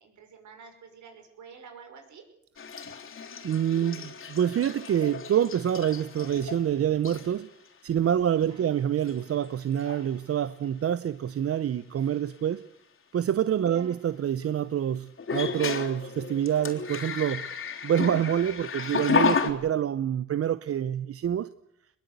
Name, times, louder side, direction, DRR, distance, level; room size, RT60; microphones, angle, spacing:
voice 1, 0.0-2.2 8.5-8.8 13.7-14.0, right 6 dB, 70° right, 5.8 m, -49 dB
sound 1, 2.6-6.7 7.0-7.4 8.4-8.5 9.0-9.5 9.7-10.1 12.1-12.2 15.2-19.5, left 6 dB, 45° left, 3.6 m, -32 dB
voice 2, 3.4-7.5 7.8-12.6 13.1-17.5 17.8-21.5, right 9 dB, 50° right, 0.8 m, -27 dB
22.0 x 21.0 x 8.2 m
cardioid pair, 90°, 30 cm